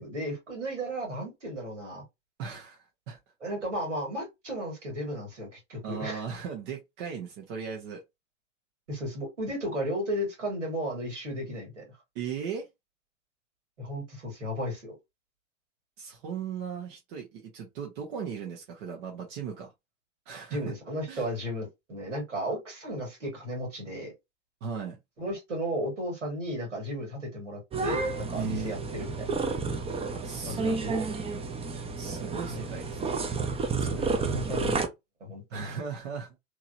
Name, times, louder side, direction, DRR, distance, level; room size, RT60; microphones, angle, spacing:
voice 1, 0.0-2.0 3.4-6.2 8.9-11.8 13.8-14.9 20.5-24.1 25.2-29.3 30.5-30.8 32.5-32.7 34.0-34.8 35.2-35.7, equal, 80° right, 2.3 m, -34 dB
voice 2, 2.4-3.2 5.8-8.0 12.1-12.7 16.0-19.7 20.3-20.6 21.1-21.2 24.6-25.0 28.4-28.7 30.1-31.1 32.0-33.2 33.8-34.3 35.5-36.4, right 6 dB, 50° right, 1.3 m, -37 dB
sound 1, 27.7-34.9, right 4 dB, 15° right, 0.7 m, -31 dB
3.7 x 3.1 x 2.7 m
figure-of-eight pair, 80°, 36 cm